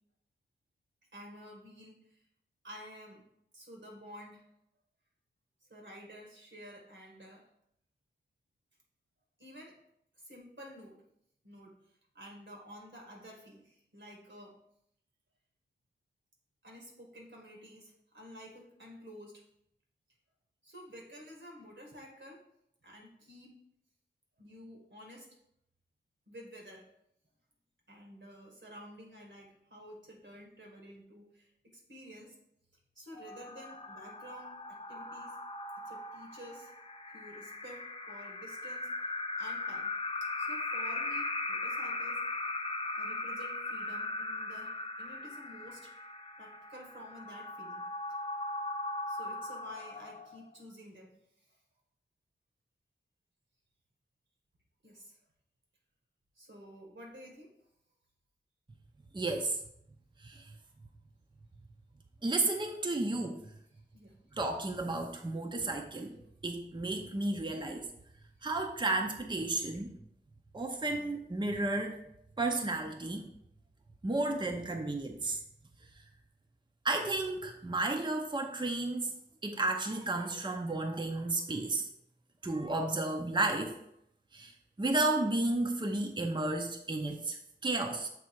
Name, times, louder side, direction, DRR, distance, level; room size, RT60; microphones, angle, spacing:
voice 1, 1.1-2.2 2.6-3.2 3.5-4.4 5.7-7.5 9.4-9.8 10.2-11.0 11.4-11.8 12.1-14.6 16.6-19.4 20.6-22.4 22.8-23.5 24.4-25.3 26.3-26.9 27.9-32.3 33.0-35.3 35.8-36.7 37.1-39.9 40.2-42.2 43.0-45.9 46.4-47.9 49.1-51.6 54.8-55.2 56.4-57.5 60.3-60.4 63.7-64.2, equal, 80° right, -1 dB, 1.8 m, -51 dB
sound 1, 33.2-50.5, left 2 dB, 30° left, 0.4 m, -39 dB
voice 2, 59.1-59.6 60.2-60.5 62.2-63.4 64.4-66.2 66.4-67.9 68.4-69.9 70.5-72.0 72.4-73.2 74.0-75.4 76.8-79.1 79.4-81.9 82.4-83.8 84.3-84.5 84.8-87.4 87.6-88.1, right 2 dB, 25° right, 4 dB, 0.6 m, -32 dB
7.4 x 3.3 x 4.6 m, 0.75 s
wide cardioid pair, 50°, 19 cm